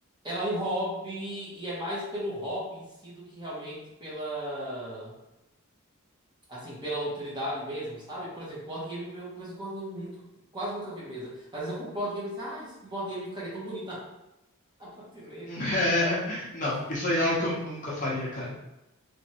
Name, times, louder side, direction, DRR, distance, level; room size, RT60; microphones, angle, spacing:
voice 1, 0.2-5.1 6.5-10.2 10.5-14.1 14.8-15.5, right 1 dB, 20° right, -7 dB, 1.1 m, -35 dB
voice 2, 15.5-18.7, left 1 dB, 35° left, -5 dB, 0.8 m, -28 dB
3.2 x 3.1 x 2.9 m, 0.94 s
head